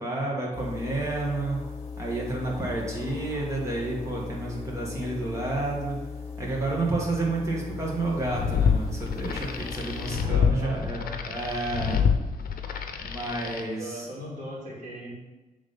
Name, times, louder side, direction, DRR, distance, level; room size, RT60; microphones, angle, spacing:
voice 1, 0.0-1.6 2.0-6.0 6.4-12.1 13.0-14.1, right 2 dB, 20° right, -3 dB, 1.7 m, -30 dB
sound 1, 0.5-10.3, left 5 dB, 45° left, 1.3 m, -38 dB
sound 2, 8.1-13.6, left 7 dB, 75° left, 0.6 m, -27 dB
voice 2, 10.3-11.0 13.5-15.1, right 1 dB, 50° right, -7 dB, 2.4 m, -39 dB
7.3 x 3.7 x 5.3 m, 1.1 s
wide cardioid pair, 145°, 15 cm